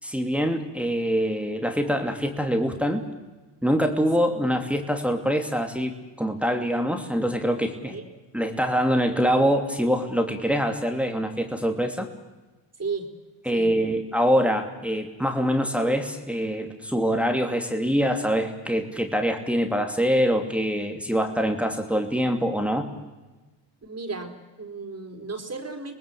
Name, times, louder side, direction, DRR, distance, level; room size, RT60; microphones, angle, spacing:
voice 1, 0.0-3.0 3.6-5.9 6.2-7.9 8.3-12.1 13.5-22.9, equal, 5° right, 4 dB, 2.7 m, -24 dB
voice 2, 23.8-25.9, right 4 dB, 35° right, 4 dB, 4.3 m, -34 dB
25.5 x 19.5 x 8.5 m, 1.2 s
cardioid pair, 70°, 44 cm